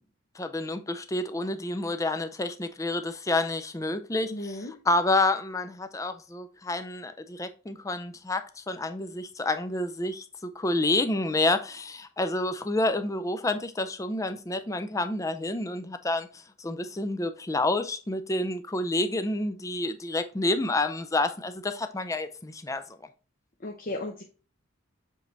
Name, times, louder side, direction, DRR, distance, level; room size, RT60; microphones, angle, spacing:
voice 1, 0.4-4.3 4.9-22.8, left 2 dB, 15° left, 0.5 m, -29 dB
voice 2, 4.2-4.7 23.6-24.2, left 1 dB, 45° left, 0.8 m, -35 dB
7.5 x 3.3 x 3.9 m
head